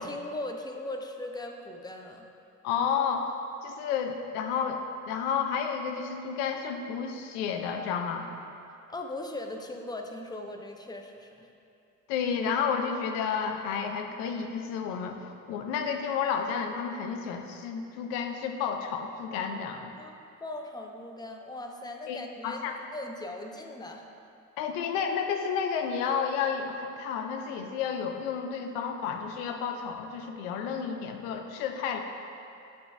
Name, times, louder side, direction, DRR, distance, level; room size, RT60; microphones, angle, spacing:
voice 1, 0.0-2.3 8.9-11.5 20.0-22.6 22.9-24.0, left 2 dB, 10° left, 3 dB, 0.6 m, -39 dB
voice 2, 2.6-3.3 3.6-8.3 12.1-19.9 22.1-22.7 24.6-32.0, left 6 dB, 70° left, 5 dB, 0.7 m, -31 dB
8.4 x 4.0 x 3.3 m, 2.6 s
hypercardioid pair, 55°, 40 cm